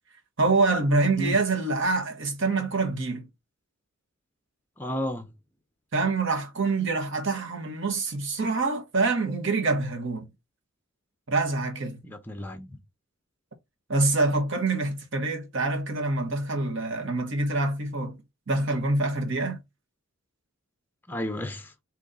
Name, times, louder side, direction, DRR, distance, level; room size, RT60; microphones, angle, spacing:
voice 1, 0.4-3.3 5.9-10.3 11.3-12.0 13.9-18.2 18.5-19.6, right 3 dB, 60° right, 1.1 m, -26 dB
voice 2, 4.8-5.3 12.0-12.8 21.1-21.7, equal, 10° left, 0.7 m, -32 dB
3.9 x 3.0 x 3.9 m
head